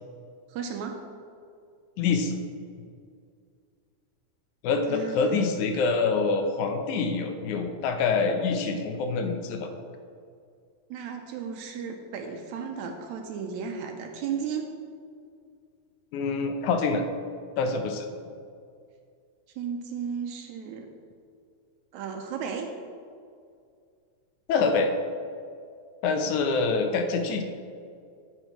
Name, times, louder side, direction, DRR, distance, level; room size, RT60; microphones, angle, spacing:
voice 1, 0.5-1.0 4.9-5.5 10.9-14.7 19.5-20.9 21.9-22.7, right 6 dB, 80° right, 4 dB, 1.8 m, -34 dB
voice 2, 2.0-2.4 4.6-9.7 16.1-17.0 17.6-18.1 24.5-24.9 26.0-27.4, left 4 dB, 75° left, 5 dB, 2.0 m, -25 dB
9.8 x 8.9 x 3.0 m, 2.3 s
omnidirectional pair, 3.6 m